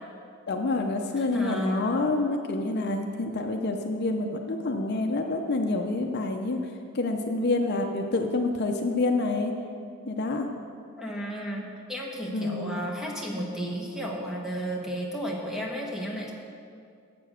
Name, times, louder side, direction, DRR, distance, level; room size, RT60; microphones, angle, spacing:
voice 1, 0.5-6.6 6.9-9.5 10.1-10.5 12.3-12.8, left 2 dB, 50° left, 4 dB, 0.6 m, -27 dB
voice 2, 1.2-1.8 11.0-16.3, right 1 dB, ahead, -2 dB, 1.0 m, -33 dB
7.5 x 6.9 x 6.4 m, 2.3 s
head